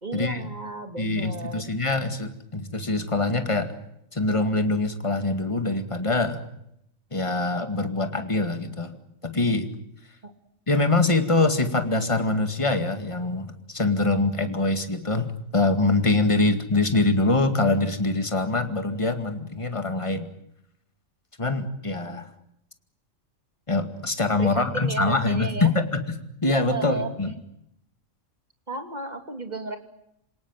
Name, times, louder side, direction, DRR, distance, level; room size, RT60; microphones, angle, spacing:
voice 1, 0.0-1.7 10.2-10.3 24.4-25.7 26.6-27.2 28.7-29.8, right 3 dB, 30° right, 7 dB, 2.9 m, -33 dB
voice 2, 1.0-3.7 4.1-6.4 7.1-9.7 10.7-20.3 21.4-22.3 23.7-26.0 26.4-27.3, left 2 dB, 25° left, 8 dB, 2.2 m, -24 dB
27.5 x 18.5 x 9.2 m, 0.77 s
omnidirectional pair, 1.4 m